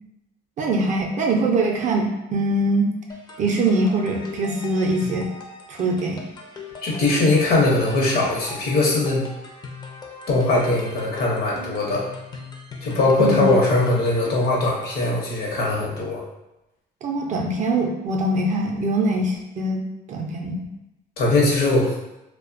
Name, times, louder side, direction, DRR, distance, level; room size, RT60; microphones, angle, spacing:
voice 1, 0.6-2.9 3.4-5.3 5.7-6.2 13.2-13.4 17.0-19.8 20.1-20.6, right 2 dB, 45° right, 1 dB, 0.4 m, -22 dB
sound 1, 3.1-15.4, left 3 dB, 25° left, 0.4 m, -40 dB
voice 2, 6.8-9.2 10.3-12.0 12.8-16.2 21.2-21.9, left 2 dB, 65° left, -3 dB, 0.7 m, -20 dB
2.6 x 2.1 x 2.4 m, 0.93 s
cardioid pair, 110°, 17 cm